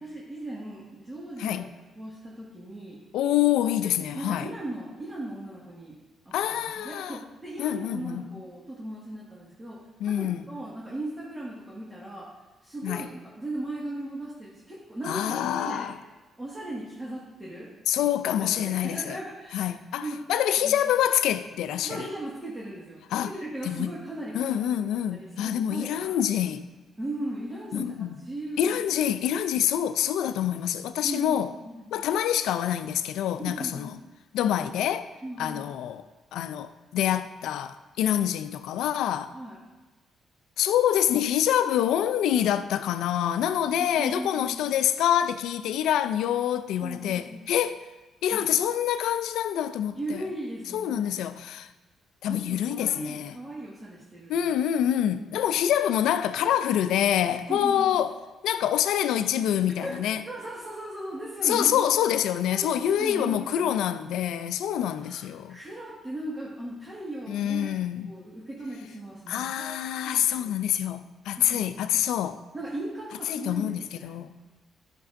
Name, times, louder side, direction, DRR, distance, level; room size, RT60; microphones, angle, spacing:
voice 1, 0.0-1.7 2.0-3.0 4.1-6.0 6.3-6.4 6.6-12.3 12.6-13.1 13.4-15.9 16.4-17.7 18.0-18.1 18.4-19.7 20.0-20.2 20.6-20.7 21.8-26.1 27.0-28.8 31.0-32.0 33.4-33.9 35.2-35.7 39.3-39.6 43.8-44.8 46.8-47.5 48.3-48.4 49.9-51.3 52.3-54.5 55.1-55.3 57.5-57.9 59.7-61.8 62.5-63.8 65.0-67.8 68.0-69.8 70.0-70.5 71.4-71.8 72.5-74.1, right 1 dB, 15° right, 1.7 m, -38 dB
voice 2, 3.1-4.5 6.3-7.2 7.6-8.4 10.0-10.5 12.8-13.1 15.0-16.0 17.9-19.2 19.5-22.1 23.1-23.3 23.6-23.9 24.3-26.6 27.7-28.2 28.6-31.5 31.9-34.0 34.3-35.1 35.4-36.1 36.3-39.3 40.6-47.8 48.2-50.2 50.7-51.7 52.2-53.4 54.3-58.1 58.4-60.2 61.4-65.6 67.3-68.1 69.3-72.4 73.3-74.4, left 10 dB, 85° left, 0.4 m, -26 dB
11.0 x 5.9 x 2.6 m
cardioid pair, 90°, 0 cm